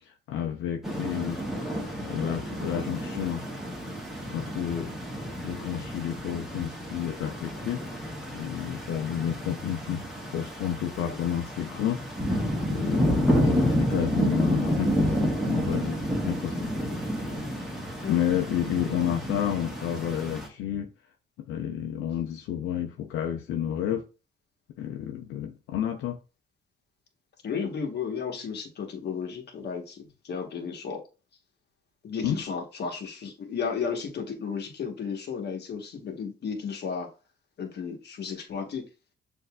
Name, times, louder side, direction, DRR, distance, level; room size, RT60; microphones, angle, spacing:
voice 1, 0.0-1.4 2.0-3.4 4.3-4.9 5.4-10.0 10.3-12.0 12.7-16.7 18.1-20.9 21.4-24.0 24.8-26.2 32.2-32.4, left 10 dB, 90° left, 0.5 m, -30 dB
sound 1, 0.8-20.5, equal, ahead, 1.2 m, -30 dB
voice 2, 18.0-18.4 27.4-31.0 32.0-37.1 37.6-38.9, left 6 dB, 55° left, 1.1 m, -33 dB
6.4 x 2.6 x 2.2 m
cardioid pair, 90°, 20 cm